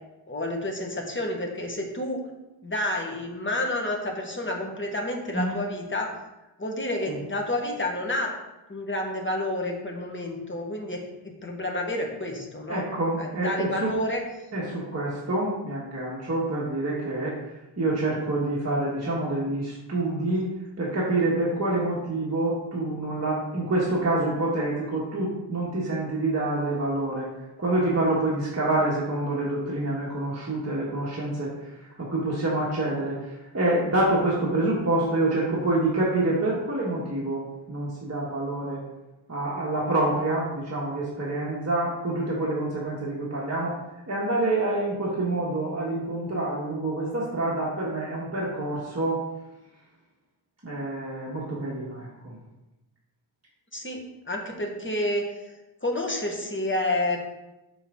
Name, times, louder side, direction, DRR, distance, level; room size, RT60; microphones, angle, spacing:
voice 1, 0.3-2.2 2.6-6.1 6.6-8.3 8.7-12.9 13.2-14.2 53.7-55.3 55.8-57.4, left 1 dB, 30° left, 1 dB, 1.2 m, -29 dB
voice 2, 12.7-14.0 14.5-17.3 17.8-20.5 20.8-27.3 27.6-38.8 39.3-43.8 44.1-49.2 50.6-52.4, right 2 dB, 40° right, -6 dB, 1.3 m, -27 dB
5.9 x 5.7 x 3.7 m, 1.0 s
wide cardioid pair, 70°, 41 cm